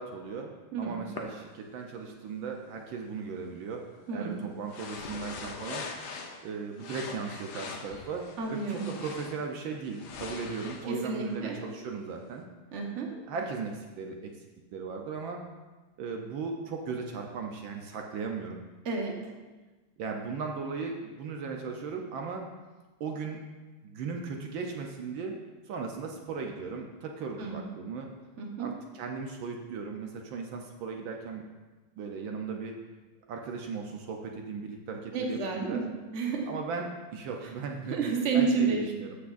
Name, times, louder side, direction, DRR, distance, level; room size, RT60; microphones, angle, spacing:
voice 1, 0.0-3.8 4.1-5.8 6.4-12.4 13.1-14.3 14.7-15.4 16.0-18.6 20.0-22.5 23.0-23.4 23.8-25.4 25.7-28.1 28.6-31.4 32.0-32.8 33.3-35.8 36.5-38.0 38.3-39.2, right 5 dB, 75° right, 2 dB, 1.4 m, -37 dB
voice 2, 0.7-1.1 4.1-4.4 8.4-8.9 10.9-11.5 12.7-13.1 18.8-19.1 27.4-27.6 28.4-28.7 35.1-35.8 36.1-36.5 37.9-38.8, right 5 dB, 40° right, 0 dB, 1.2 m, -30 dB
sound 1, 1.1-1.2 4.7-6.5 6.8-9.4 9.9-12.1, left 4 dB, 60° left, 1.2 m, -42 dB
14.0 x 6.0 x 2.5 m, 1.2 s
omnidirectional pair, 2.3 m